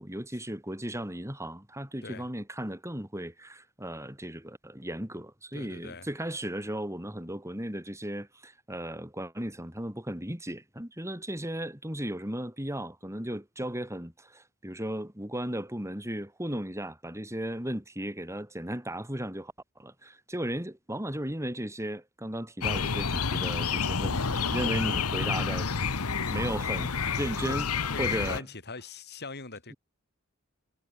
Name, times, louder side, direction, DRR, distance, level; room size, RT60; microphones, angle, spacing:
voice 1, 0.0-25.7 26.3-27.7 28.0-28.4, right 1 dB, 15° right, 7.1 m, -36 dB
voice 2, 5.5-6.1 27.4-27.6 27.9-29.7, left 3 dB, 50° left, 4.1 m, -41 dB
sound 1, 22.6-28.4, left 5 dB, 75° left, 1.3 m, -29 dB
head